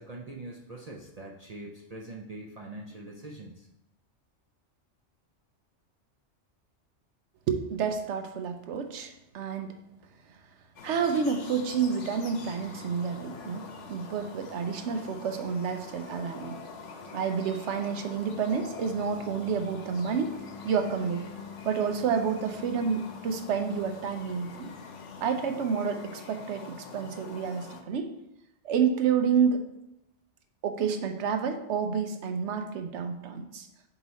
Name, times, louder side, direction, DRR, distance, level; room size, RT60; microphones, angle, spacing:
voice 1, 0.0-3.7, right 2 dB, 45° right, -2 dB, 0.5 m, -43 dB
voice 2, 7.5-9.7 10.8-16.6 17.1-20.4 20.6-21.3 21.6-24.7 25.2-28.1 28.6-29.7 30.6-33.7, right 6 dB, 75° right, 6 dB, 0.9 m, -29 dB
sound 1, 10.8-27.8, left 4 dB, 80° left, 1.1 m, -44 dB
7.6 x 3.0 x 4.1 m, 0.88 s
omnidirectional pair, 1.2 m